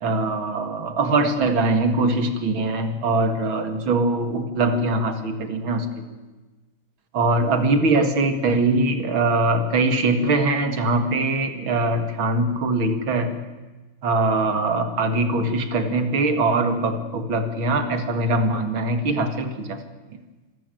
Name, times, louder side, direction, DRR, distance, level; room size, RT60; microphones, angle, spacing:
voice 1, 0.0-6.0 7.1-13.4 14.0-19.8, right 2 dB, 70° right, 8 dB, 2.7 m, -22 dB
26.5 x 13.5 x 9.1 m, 1.2 s
omnidirectional pair, 2.3 m